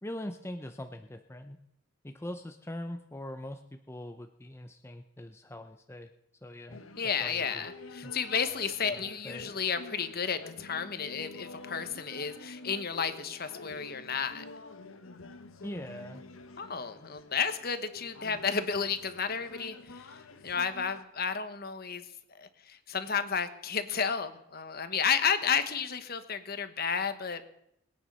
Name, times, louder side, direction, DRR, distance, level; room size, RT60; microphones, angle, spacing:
voice 1, 0.0-1.6 2.0-6.1 6.4-7.7 8.0-8.1 8.9-9.5 15.6-16.2, left 1 dB, 10° left, 6 dB, 0.6 m, -42 dB
sound 1, 6.7-21.0, left 3 dB, 75° left, 1.1 m, -48 dB
voice 2, 7.0-14.4 16.6-22.0 22.4-27.4, left 6 dB, 45° left, 10 dB, 1.1 m, -32 dB
21.0 x 9.2 x 5.5 m, 0.78 s
head